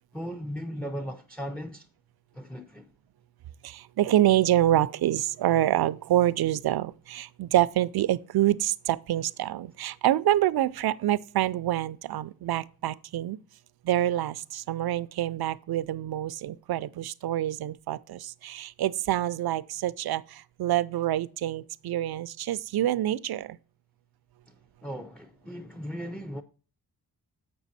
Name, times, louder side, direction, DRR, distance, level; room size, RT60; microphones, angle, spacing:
voice 1, 0.1-1.9 2.3-2.9 24.5-24.6 24.8-26.4, equal, 5° left, 0.4 m, -37 dB
voice 2, 3.6-13.4 13.8-23.6, right 13 dB, 80° right, 0.5 m, -26 dB
7.5 x 6.2 x 4.1 m
wide cardioid pair, 150°, 37 cm